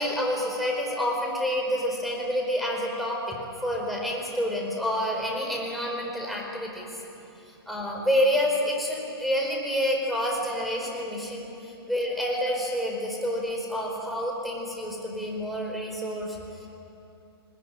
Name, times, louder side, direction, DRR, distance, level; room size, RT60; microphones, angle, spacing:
voice 1, 0.0-6.9 7.7-16.7, equal, ahead, -1 dB, 4.7 m, -28 dB
20.5 x 20.0 x 9.0 m, 2.8 s
hypercardioid pair, 130°, 14 cm